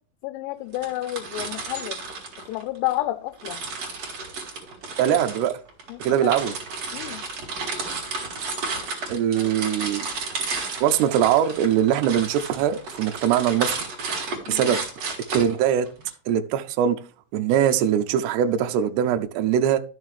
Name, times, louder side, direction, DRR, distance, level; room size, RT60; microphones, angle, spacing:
voice 1, 0.2-2.0 2.5-3.6 5.9-6.5 6.9-7.2 9.3-9.5 14.5-14.7, left 16 dB, 85° left, 2.8 m, -31 dB
sound 1, 0.7-3.0 3.4-16.1, right 4 dB, 45° right, 2.4 m, -32 dB
voice 2, 5.0-5.5 6.0-6.6 9.1-10.1 10.8-13.9 14.5-14.8 15.3-15.9 16.3-17.0 17.3-19.8, right 9 dB, 85° right, 2.4 m, -22 dB
12.5 x 6.5 x 3.2 m
omnidirectional pair, 5.8 m